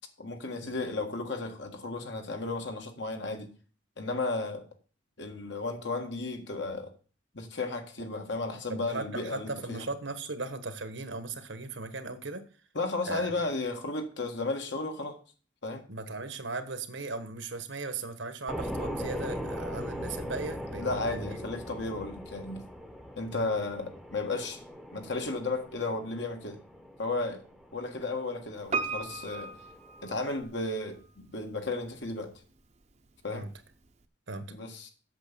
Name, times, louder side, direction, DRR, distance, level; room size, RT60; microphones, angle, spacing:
voice 1, 0.2-3.5 4.0-4.6 5.2-6.9 7.3-9.8 12.8-15.2 15.6-15.8 20.8-22.6 23.2-24.6 24.9-26.6 27.0-27.4 27.7-29.5 30.0-32.3 33.2-33.5 34.5-34.9, left 3 dB, 65° left, 1.8 m, -34 dB
voice 2, 8.7-12.4 13.1-13.3 15.9-21.4 23.3-23.5 33.3-33.5 34.3-34.5, right 3 dB, 75° right, 1.4 m, -38 dB
sound 1, 18.5-30.4, equal, ahead, 0.9 m, -40 dB
Piano, 28.7-30.8 31.0-31.1, right 4 dB, 35° right, 0.8 m, -35 dB
8.2 x 7.2 x 6.9 m
head